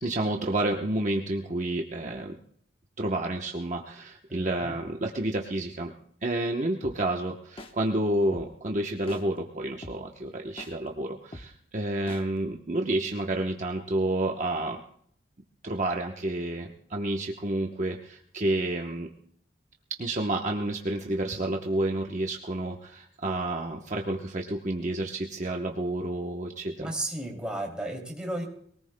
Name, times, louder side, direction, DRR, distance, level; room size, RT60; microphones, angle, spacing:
voice 1, 0.0-2.4 3.0-5.9 6.2-14.8 15.6-19.1 20.0-26.9, right 1 dB, 40° right, 1 dB, 0.9 m, -30 dB
voice 2, 4.3-4.8 26.8-28.4, right 1 dB, 5° right, -1 dB, 2.7 m, -34 dB
sound 1, 6.8-7.0 7.6-7.7 8.3-8.5 9.1-9.2 9.8-10.0 10.6-10.7 11.3-11.5 12.1-12.2, left 1 dB, 30° left, 0.9 m, -41 dB
23.0 x 18.0 x 2.2 m, 0.64 s
head